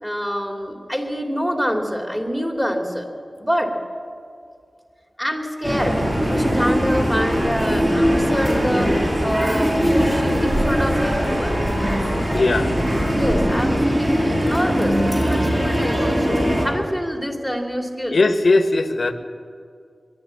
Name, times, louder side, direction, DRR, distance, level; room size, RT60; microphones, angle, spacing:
voice 1, 0.0-3.1 3.4-3.7 5.2-6.0 6.3-11.6 13.1-18.2, equal, 5° right, 2 dB, 3.0 m, -26 dB
sound 1, 5.6-16.7, equal, 30° right, 5.8 m, -20 dB
voice 2, 12.3-12.7 18.1-19.1, left 3 dB, 70° left, 8 dB, 1.3 m, -18 dB
22.5 x 12.0 x 9.9 m, 2.3 s
wide cardioid pair, 55°, 0 cm